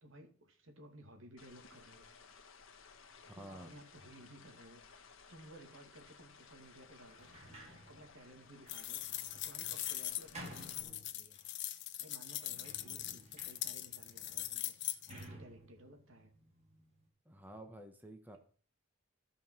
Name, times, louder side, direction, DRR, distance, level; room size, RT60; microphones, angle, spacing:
voice 1, 0.0-2.0 3.3-9.0 9.3-11.4 12.0-16.3, right 1 dB, 75° right, 5 dB, 2.5 m, -57 dB
sound 1, 1.4-10.8, left 5 dB, 75° left, 1.5 m, -59 dB
voice 2, 3.2-3.7 17.2-18.4, right 1 dB, 10° right, 4 dB, 1.4 m, -51 dB
Sliding door, 7.0-11.6 12.2-17.0, right 1 dB, 35° right, 4.1 m, -55 dB
sound 2, 8.7-15.2, left 14 dB, 60° left, 0.9 m, -41 dB
14.5 x 5.6 x 6.2 m, 0.42 s
head